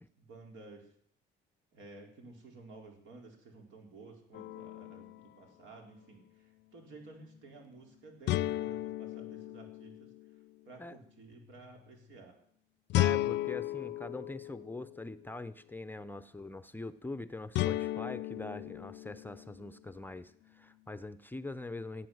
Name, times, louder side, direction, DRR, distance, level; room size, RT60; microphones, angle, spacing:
voice 1, 0.2-0.9 1.7-10.1 10.6-12.4, right 3 dB, 80° right, 2 dB, 4.3 m, -53 dB
sound 1, 4.3-5.3 8.3-10.4 12.9-15.1 17.6-19.7, left 15 dB, 65° left, 0.5 m, -34 dB
voice 2, 12.9-22.1, left 2 dB, 10° left, 11 dB, 0.6 m, -43 dB
17.0 x 8.6 x 7.9 m, 0.66 s
cardioid pair, 120°, 20 cm